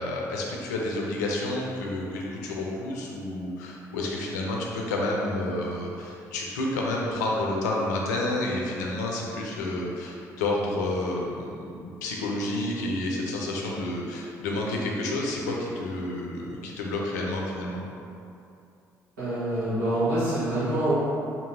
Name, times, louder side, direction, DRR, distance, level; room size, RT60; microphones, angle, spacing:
voice 1, 0.0-17.8, left 2 dB, 85° left, -2 dB, 0.4 m, -30 dB
voice 2, 19.2-20.9, right 1 dB, 85° right, -12 dB, 1.0 m, -26 dB
2.7 x 2.6 x 2.6 m, 2.6 s
hypercardioid pair, 50°, 9 cm